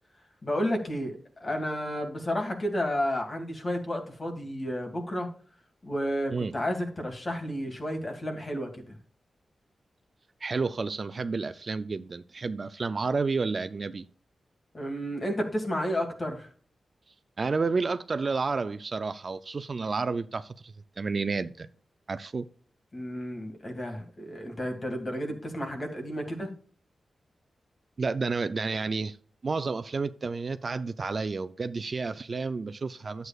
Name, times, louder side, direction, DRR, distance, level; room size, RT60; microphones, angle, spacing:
voice 1, 0.4-5.3 5.8-8.9 14.7-16.5 22.9-26.5, equal, 35° left, 1.9 m, -31 dB
voice 2, 10.4-14.1 17.4-21.7 22.1-22.5 28.0-29.2 29.4-33.3, right 4 dB, 40° right, 0.4 m, -30 dB
11.0 x 8.0 x 2.4 m
wide cardioid pair, 115°, 0 cm